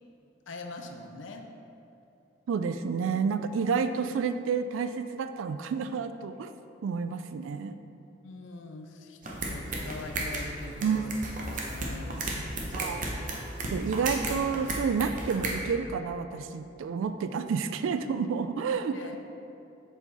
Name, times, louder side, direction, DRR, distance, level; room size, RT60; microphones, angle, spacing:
voice 1, 0.5-1.5 8.2-11.3 11.6-12.2 18.9-19.2, left 3 dB, 75° left, 4 dB, 0.5 m, -43 dB
voice 2, 2.5-6.5 6.8-7.7 10.8-11.0 12.7-13.0 13.7-19.2, right 5 dB, 85° right, 10 dB, 0.3 m, -30 dB
sound 1, 9.2-15.6, right 2 dB, 40° right, 0.7 m, -34 dB
7.1 x 3.8 x 4.1 m, 2.7 s
head